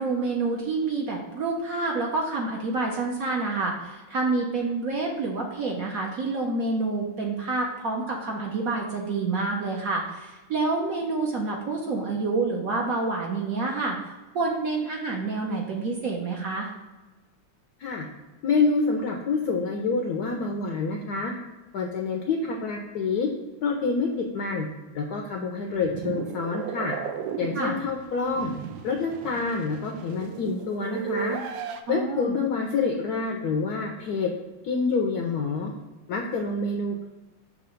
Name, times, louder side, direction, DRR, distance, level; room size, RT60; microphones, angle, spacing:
voice 1, 0.0-16.7 27.5-27.8 31.9-32.4, right 3 dB, 60° right, -1 dB, 0.9 m, -28 dB
voice 2, 18.4-21.3 21.7-23.3 23.6-24.7 24.9-26.9 27.4-28.5 28.8-31.4 31.9-34.3 34.6-35.7 36.1-37.1, left 4 dB, 70° left, 2 dB, 0.9 m, -27 dB
sound 1, 25.7-31.8, right 7 dB, 75° right, 1.2 m, -35 dB
6.7 x 3.1 x 5.0 m, 1.2 s
omnidirectional pair, 2.2 m